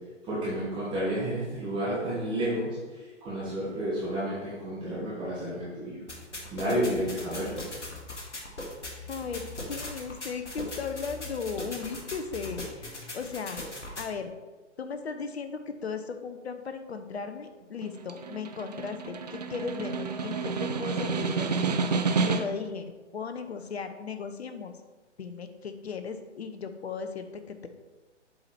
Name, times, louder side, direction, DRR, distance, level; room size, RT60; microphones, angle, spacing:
voice 1, 0.3-2.8 3.2-6.0 6.5-7.6, right 1 dB, 15° right, -10 dB, 1.9 m, -31 dB
sound 1, 6.1-14.1, left 2 dB, 75° left, 1.8 m, -40 dB
voice 2, 9.1-13.6 14.0-14.3 14.8-24.7 25.2-27.7, left 5 dB, 60° left, 8 dB, 0.9 m, -37 dB
Snare drum, 17.8-22.7, right 4 dB, 35° right, 0.4 m, -30 dB
7.5 x 4.5 x 4.3 m, 1.2 s
figure-of-eight pair, 130°, 35 cm